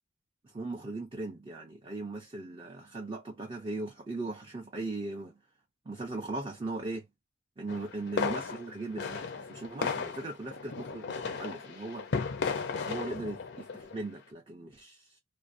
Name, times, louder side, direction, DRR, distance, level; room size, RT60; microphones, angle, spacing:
voice 1, 0.4-5.4 5.9-7.1 7.6-12.1 12.8-15.2, right 2 dB, 25° right, 0.4 m, -38 dB
sound 1, 7.7-14.1, left 5 dB, 50° left, 0.5 m, -35 dB
2.5 x 2.0 x 2.5 m
head